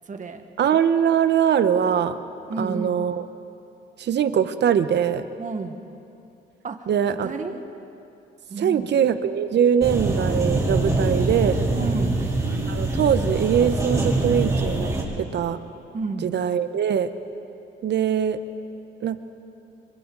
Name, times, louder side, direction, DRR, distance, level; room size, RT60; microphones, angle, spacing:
voice 1, 0.1-0.4 2.5-3.0 5.4-5.8 6.6-6.9 7.2-7.6 8.5-8.9 11.7-12.2 15.9-16.3, right 3 dB, 40° right, 6 dB, 1.6 m, -31 dB
voice 2, 0.6-2.2 2.6-3.2 4.0-5.2 6.9-7.3 8.6-11.6 12.7-14.9 15.2-15.6 16.2-17.1 17.8-18.4 19.0-19.2, right 8 dB, 60° right, 11 dB, 1.0 m, -22 dB
sound 1, 9.8-15.0, right 2 dB, 15° right, 4.9 m, -24 dB
27.5 x 23.5 x 4.0 m, 2.7 s
cardioid pair, 90°, 20 cm